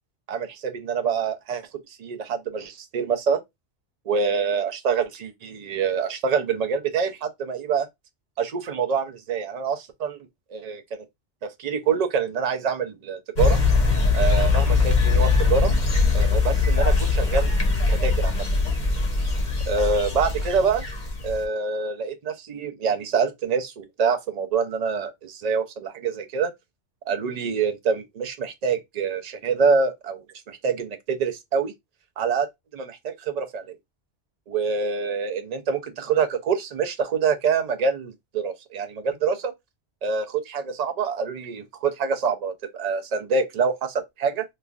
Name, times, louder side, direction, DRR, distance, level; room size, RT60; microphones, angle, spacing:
voice 1, 0.3-1.6 2.0-3.4 4.1-7.9 8.4-10.2 10.5-10.8 11.6-13.6 14.1-15.7 16.1-17.5 17.9-18.4 19.7-20.8 21.2-26.5 27.1-31.7 32.2-32.5 32.7-33.6 34.5-39.5 40.0-44.4, right 5 dB, 60° right, 0.4 m, -26 dB
sound 1, 13.3-21.4, left 4 dB, 45° left, 0.8 m, -21 dB
3.1 x 2.3 x 2.4 m
omnidirectional pair, 1.2 m